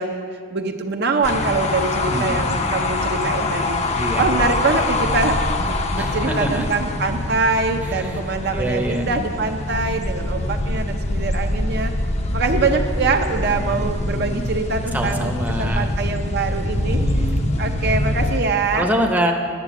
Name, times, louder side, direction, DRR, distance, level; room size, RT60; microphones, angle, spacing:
voice 1, 0.0-11.9 12.3-15.3 15.6-17.0 17.6-18.9, right 3 dB, 55° right, 5 dB, 0.6 m, -24 dB
sound 1, 1.2-18.4, left 2 dB, 35° left, 0.6 m, -24 dB
voice 2, 2.0-2.4 3.9-4.2 6.0-6.6 7.8-8.2 8.5-9.0 10.1-10.2 14.9-15.9 16.9-17.4 18.7-19.3, right 1 dB, 10° right, 2 dB, 0.7 m, -25 dB
9.1 x 7.4 x 7.2 m, 2.2 s
head